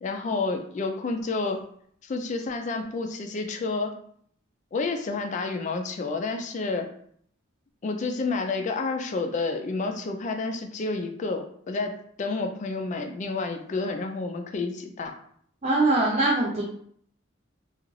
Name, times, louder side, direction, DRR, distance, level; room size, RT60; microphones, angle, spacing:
voice 1, 0.0-1.6 2.0-3.9 4.7-6.9 7.8-15.2, left 3 dB, 35° left, 5 dB, 0.3 m, -30 dB
voice 2, 15.6-16.7, right 2 dB, 35° right, -6 dB, 0.5 m, -22 dB
2.4 x 2.3 x 3.1 m, 0.63 s
head